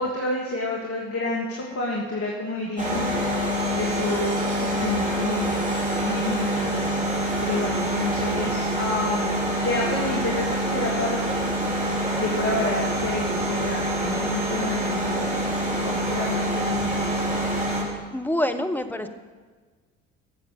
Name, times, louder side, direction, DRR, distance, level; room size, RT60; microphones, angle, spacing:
voice 1, 0.0-5.6 6.0-6.9 7.4-11.9 12.2-15.3 15.8-17.4, left 2 dB, 35° left, -2 dB, 2.6 m, -30 dB
sound 1, 2.8-17.8, right 1 dB, 20° right, 4.5 m, -26 dB
voice 2, 18.1-19.1, left 1 dB, 5° left, 7 dB, 1.2 m, -27 dB
12.5 x 7.6 x 7.0 m, 1.4 s
figure-of-eight pair, 50°, 37 cm